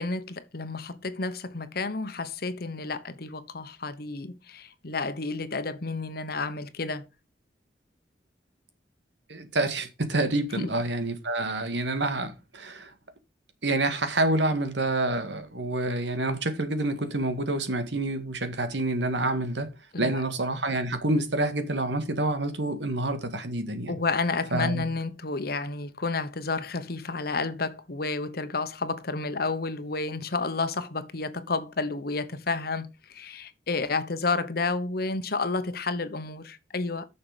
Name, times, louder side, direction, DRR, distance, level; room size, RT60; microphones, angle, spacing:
voice 1, 0.0-7.1 10.6-10.7 19.9-20.2 23.9-37.1, left 3 dB, 60° left, 1.1 m, -31 dB
voice 2, 9.3-12.9 13.6-19.7 20.0-24.0 24.5-24.8, right 2 dB, 90° right, 2.0 m, -28 dB
9.7 x 6.7 x 5.1 m
head